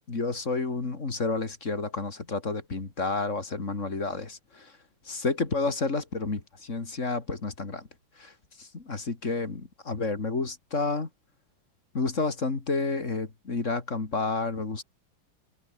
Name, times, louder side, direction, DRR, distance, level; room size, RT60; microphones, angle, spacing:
voice 1, 0.1-4.7 5.1-7.9 8.2-8.3 8.6-11.1 11.9-14.8, left 3 dB, 35° left, 2.9 m, -30 dB
omnidirectional pair, 2.2 m